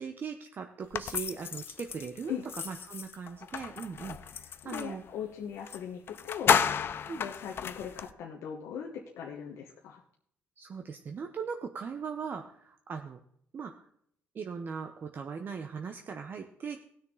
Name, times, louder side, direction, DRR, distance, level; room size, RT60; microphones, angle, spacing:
voice 1, 0.0-2.3 2.6-5.0 7.1-7.2 10.6-13.2 13.5-13.7 14.3-16.8, right 6 dB, 45° right, 5 dB, 0.8 m, -39 dB
sound 1, 0.9-5.0 5.7-5.8 6.1-8.1, left 7 dB, 55° left, 0.6 m, -32 dB
voice 2, 4.6-6.6 7.2-10.0, left 8 dB, 90° left, 0 dB, 1.3 m, -39 dB
18.5 x 6.5 x 3.8 m, 0.68 s
cardioid pair, 110°, 5 cm